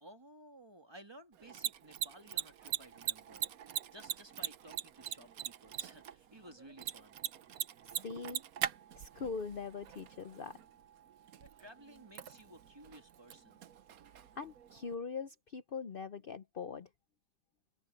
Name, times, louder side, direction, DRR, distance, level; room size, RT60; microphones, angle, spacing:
voice 1, 0.0-3.5 3.9-7.2 11.4-13.6, right 1 dB, 15° right, 1.7 m, -56 dB
Mechanisms, 1.3-14.9, right 10 dB, 60° right, 1.1 m, -43 dB
voice 2, 7.9-8.4 9.0-10.6 14.4-16.9, left 5 dB, 70° left, 0.5 m, -42 dB
open air
omnidirectional pair, 2.0 m